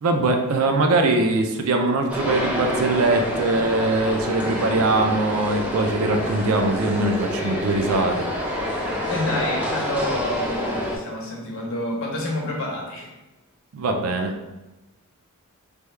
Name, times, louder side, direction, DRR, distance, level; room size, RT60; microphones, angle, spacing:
voice 1, 0.0-8.3 13.7-14.3, right 2 dB, 65° right, 4 dB, 0.4 m, -22 dB
sound 1, 2.1-11.0, left 1 dB, 5° right, 0.4 m, -27 dB
voice 2, 9.1-13.1, left 1 dB, 60° left, -1 dB, 0.8 m, -28 dB
3.3 x 2.2 x 3.1 m, 1.1 s
head